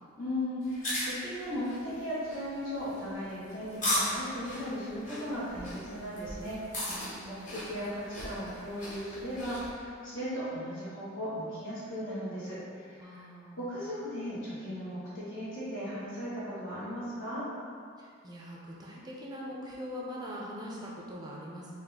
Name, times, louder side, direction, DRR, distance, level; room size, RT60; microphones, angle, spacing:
voice 1, 0.2-6.6 7.3-13.2 13.6-17.5, equal, 70° left, -10 dB, 1.4 m, -37 dB
sound 1, 0.6-9.7, left 1 dB, 40° left, 1.0 m, -37 dB
voice 2, 6.9-7.6 13.0-13.7 18.0-21.7, equal, 20° right, -4 dB, 0.4 m, -42 dB
4.0 x 2.4 x 3.4 m, 2.2 s
head